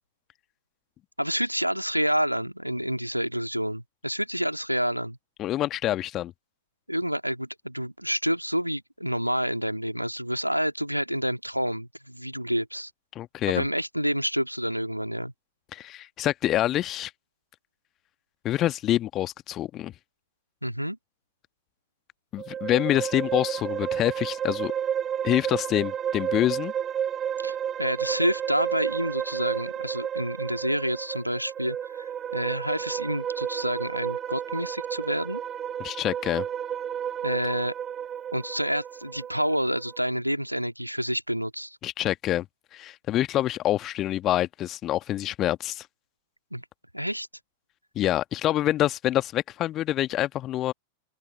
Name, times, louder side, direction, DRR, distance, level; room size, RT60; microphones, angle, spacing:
voice 1, 1.2-5.2 6.9-12.9 13.5-15.3 20.6-21.0 27.4-35.4 37.2-37.7 38.3-41.8 46.5-46.6 46.9-47.3, equal, 90° right, 2.3 m, -28 dB
voice 2, 5.4-6.3 13.1-13.6 15.7-17.1 18.4-19.9 22.3-24.7 25.2-26.7 35.8-36.4 41.8-42.4 42.7-45.9 47.9-50.7, left 13 dB, 35° left, 1.4 m, -26 dB
sound 1, 22.4-40.0, right 9 dB, 25° right, 1.4 m, -32 dB
open air
figure-of-eight pair, 90°, 0 cm